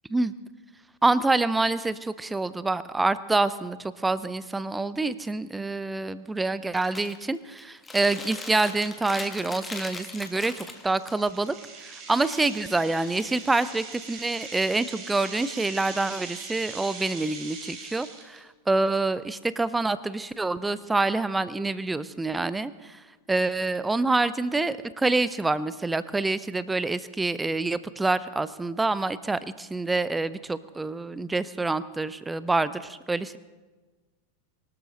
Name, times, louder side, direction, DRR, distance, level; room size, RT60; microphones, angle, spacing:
voice 1, 1.0-11.5 11.8-23.0 23.3-33.4, right 3 dB, 10° right, 16 dB, 0.6 m, -27 dB
Chewing mastication, 6.7-7.2 7.6-11.1 12.2-13.7, left 3 dB, 10° left, 1.7 m, -40 dB
sound 1, 10.0-18.4, right 5 dB, 30° right, 3.2 m, -42 dB
24.0 x 12.5 x 4.0 m, 1.3 s
figure-of-eight pair, 90°, 0 cm